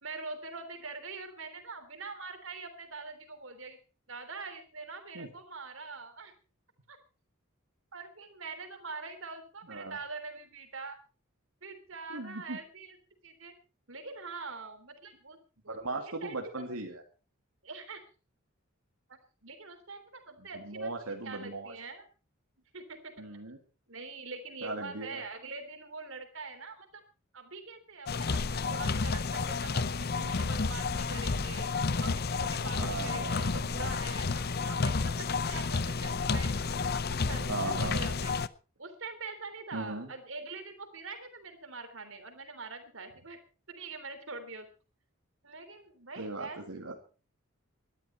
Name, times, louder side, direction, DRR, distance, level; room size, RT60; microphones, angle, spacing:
voice 1, 0.0-3.8 4.1-6.3 6.9-7.0 7.9-11.0 11.6-13.0 13.2-13.5 13.9-15.4 15.6-16.7 17.6-18.0 19.4-20.9 21.2-22.0 22.7-23.2 23.9-27.0 27.3-31.7 32.0-38.3 38.8-43.4 43.7-44.7 45.4-46.6, right 4 dB, 65° right, 8 dB, 3.3 m, -44 dB
voice 2, 12.1-12.6 15.7-17.0 20.5-21.7 23.2-23.6 24.6-25.2 32.8-33.6 37.5-38.0 39.7-40.1 46.2-47.0, right 2 dB, 85° right, 3 dB, 2.6 m, -38 dB
sound 1, 28.1-38.5, left 4 dB, 45° left, 0.7 m, -31 dB
20.0 x 12.5 x 4.3 m, 0.35 s
head